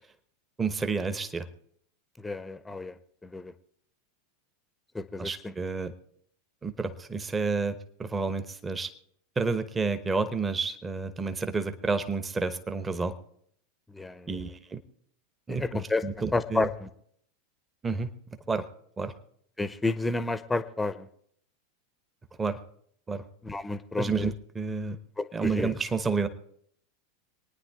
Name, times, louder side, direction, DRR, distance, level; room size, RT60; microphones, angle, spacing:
voice 1, 0.6-1.5 5.2-5.9 6.6-8.9 9.4-13.1 14.3-14.8 15.5-16.7 17.8-18.1 18.5-18.6 19.0-19.1 22.4-22.6 23.1-23.2 24.0-25.0 25.3-26.3, right 4 dB, 15° right, 11 dB, 1.0 m, -30 dB
voice 2, 2.2-2.9 3.2-3.5 4.9-5.5 13.9-14.3 15.6-16.0 16.3-16.9 19.6-21.1 23.4-24.3 25.2-25.7, left 2 dB, 10° left, 14 dB, 0.8 m, -30 dB
26.0 x 9.8 x 3.6 m, 0.67 s
figure-of-eight pair, 85°, 0 cm